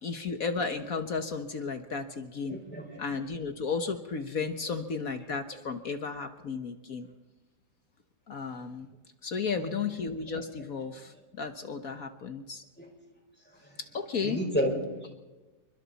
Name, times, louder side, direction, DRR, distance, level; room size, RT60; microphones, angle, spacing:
voice 1, 0.0-2.6 3.0-7.1 8.3-8.9 9.2-12.6 13.8-14.4, left 5 dB, 55° left, 8 dB, 1.5 m, -34 dB
voice 2, 2.5-3.0 9.7-9.9 12.8-12.9 13.5-13.8 14.2-15.1, equal, 5° left, 0 dB, 5.3 m, -32 dB
27.5 x 24.0 x 4.2 m, 1.1 s
omnidirectional pair, 2.0 m